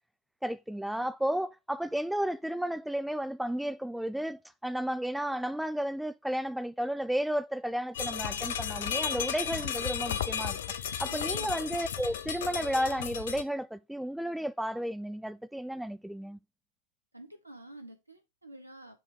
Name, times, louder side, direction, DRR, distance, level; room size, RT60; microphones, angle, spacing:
voice 1, 0.4-10.6 11.0-16.4, equal, ahead, 0.3 m, -33 dB
sound 1, 7.9-13.4, left 9 dB, 55° left, 0.5 m, -34 dB
voice 2, 11.1-11.6 17.1-19.0, right 1 dB, 85° right, 1.2 m, -49 dB
6.8 x 3.4 x 4.7 m
figure-of-eight pair, 90°, 0 cm